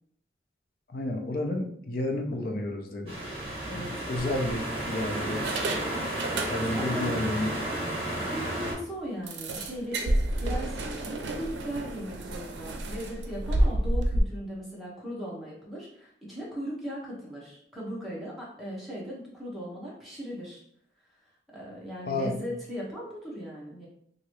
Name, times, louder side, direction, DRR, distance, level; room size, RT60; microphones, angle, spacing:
voice 1, 0.9-3.1 3.8-5.8 6.5-7.5 22.1-22.4, left 1 dB, 55° left, 2 dB, 0.5 m, -31 dB
sound 1, 3.1-8.7, right 1 dB, 30° right, 1.0 m, -32 dB
sound 2, 3.2-3.5 4.1-4.8 5.3-7.0 7.3-7.4 7.8-7.9 8.3-8.4 9.3-14.2, right 1 dB, 85° right, 0.5 m, -30 dB
voice 2, 3.6-4.0 6.7-7.2 8.1-20.6 21.5-23.9, equal, ahead, -6 dB, 0.9 m, -38 dB
2.9 x 2.6 x 3.0 m, 0.67 s
head